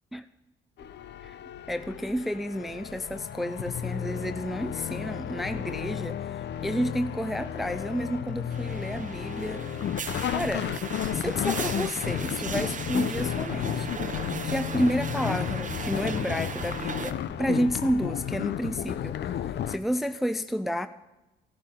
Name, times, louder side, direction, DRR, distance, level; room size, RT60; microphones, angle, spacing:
sound 1, 0.8-19.8, left 10 dB, 60° left, 0.6 m, -33 dB
voice 1, 1.7-9.7 10.3-10.7 11.1-13.9 14.4-20.9, equal, ahead, 0.4 m, -31 dB
sound 2, 8.5-17.1, right 6 dB, 40° right, 0.9 m, -37 dB
17.0 x 10.0 x 3.7 m
cardioid pair, 90°, 20 cm